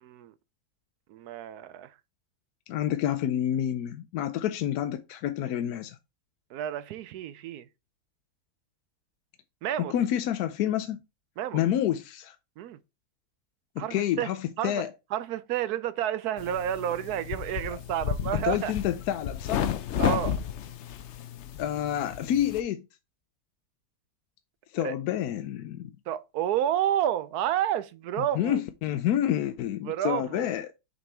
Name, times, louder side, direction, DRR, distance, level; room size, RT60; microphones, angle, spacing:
voice 1, 0.0-0.3 1.1-1.9 6.5-7.6 9.6-9.9 11.4-11.6 12.6-12.8 13.8-14.3 14.6-14.8 15.1-18.7 20.0-20.4 24.8-25.0 26.1-28.6 29.8-30.5, right 11 dB, 80° right, 1.1 m, -30 dB
voice 2, 2.7-6.0 9.9-11.0 11.5-12.4 13.8-14.9 18.4-19.7 21.6-22.8 24.7-25.9 28.3-30.7, left 11 dB, 80° left, 1.1 m, -28 dB
sound 1, 16.4-22.6, left 9 dB, 65° left, 0.7 m, -32 dB
6.7 x 4.3 x 3.4 m
omnidirectional pair, 1.6 m